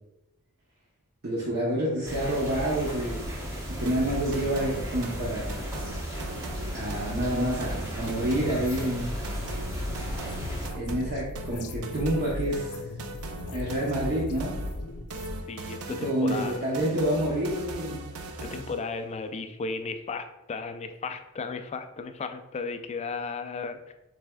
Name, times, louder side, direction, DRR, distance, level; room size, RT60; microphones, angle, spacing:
voice 1, 1.2-3.2 3.8-5.6 6.7-9.2 10.7-12.8 13.5-14.5 16.0-18.0, right 1 dB, 45° right, -5 dB, 0.8 m, -28 dB
sound 1, 2.0-10.7, equal, 15° right, 0.9 m, -35 dB
sound 2, 3.9-18.9, right 2 dB, 80° right, 0.5 m, -39 dB
sound 3, 8.0-15.4, left 1 dB, 85° left, 0.5 m, -38 dB
voice 2, 15.5-16.6 18.4-23.9, left 4 dB, 30° left, 8 dB, 0.3 m, -35 dB
6.6 x 3.4 x 2.2 m, 0.94 s
head